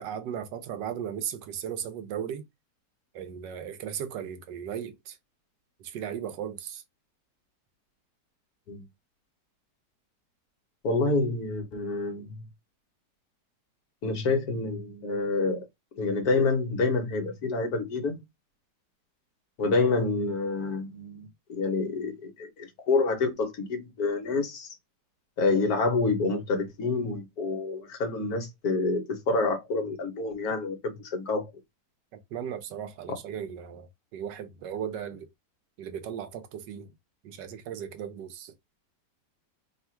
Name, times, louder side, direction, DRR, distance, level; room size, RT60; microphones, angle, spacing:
voice 1, 0.0-2.4 3.1-5.2 5.8-6.8 32.1-35.3 35.8-36.9 37.2-38.5, right 9 dB, 80° right, 1.4 m, -36 dB
voice 2, 10.8-12.4 14.0-15.7 16.0-18.2 19.6-24.7 25.4-31.5 33.1-33.2, left 3 dB, 65° left, 1.5 m, -28 dB
3.5 x 2.4 x 4.3 m
omnidirectional pair, 1.9 m